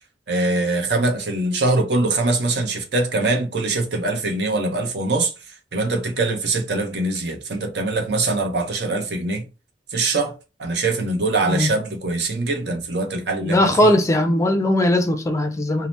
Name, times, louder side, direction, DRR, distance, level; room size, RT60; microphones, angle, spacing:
voice 1, 0.3-5.3 5.7-9.4 9.9-10.3 10.6-14.0, right 2 dB, 70° right, 0.7 m, -23 dB
voice 2, 13.4-15.9, left 1 dB, 15° left, 0.4 m, -19 dB
2.8 x 2.0 x 3.2 m
head